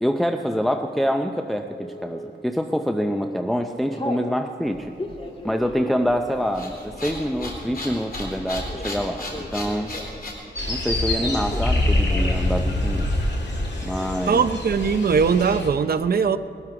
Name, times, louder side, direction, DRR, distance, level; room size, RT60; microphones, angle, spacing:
voice 1, 0.0-1.8 2.0-4.9 5.4-9.3 9.5-9.9 10.7-13.1 13.8-14.5, equal, ahead, 4 dB, 0.5 m, -25 dB
Telephone, 1.8-2.3 2.9-3.1 3.4-4.3 4.8-10.3 10.6-11.7 12.0-12.5 12.8-12.9 13.1-13.7, left 1 dB, 30° left, 1.5 m, -37 dB
sound 1, 4.7-10.3, left 1 dB, 55° left, 3.4 m, -35 dB
sound 2, 10.6-15.7, left 1 dB, 70° left, 2.6 m, -25 dB
voice 2, 14.3-16.4, right 6 dB, 55° right, 11 dB, 0.6 m, -20 dB
20.0 x 12.5 x 4.8 m, 2.7 s
wide cardioid pair, 125°, 19 cm